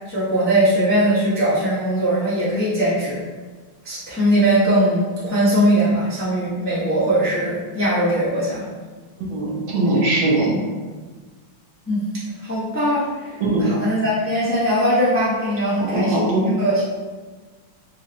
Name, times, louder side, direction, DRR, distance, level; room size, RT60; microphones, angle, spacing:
voice 1, 0.0-3.2 3.8-8.6 11.9-12.0 12.4-16.8, right 1 dB, 20° left, -11 dB, 0.3 m, -20 dB
voice 2, 9.3-10.7 13.4-13.7 15.9-16.5, right 2 dB, 70° right, -4 dB, 1.6 m, -20 dB
4.6 x 2.1 x 2.9 m, 1.4 s
omnidirectional pair, 2.3 m